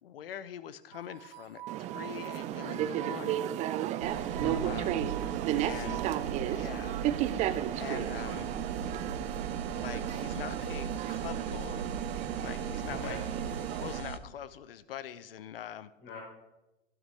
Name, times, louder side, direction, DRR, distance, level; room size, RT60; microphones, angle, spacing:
voice 1, 0.0-3.6 4.6-5.1 5.6-6.0 6.5-7.4 7.7-8.6 9.7-11.9 12.4-13.2 13.7-15.9, left 10 dB, 65° left, 16 dB, 0.7 m, -43 dB
sound 1, 0.9-6.2, right 13 dB, 50° right, 0.7 m, -45 dB
sound 2, 1.7-14.0, right 12 dB, 25° right, 0.4 m, -34 dB
sound 3, 4.0-14.2, right 6 dB, 80° right, 1.0 m, -38 dB
voice 2, 5.4-6.0 12.9-13.2 16.0-16.2, left 3 dB, 35° left, -4 dB, 4.6 m, -43 dB
12.0 x 12.0 x 3.4 m, 0.98 s
figure-of-eight pair, 100°, 31 cm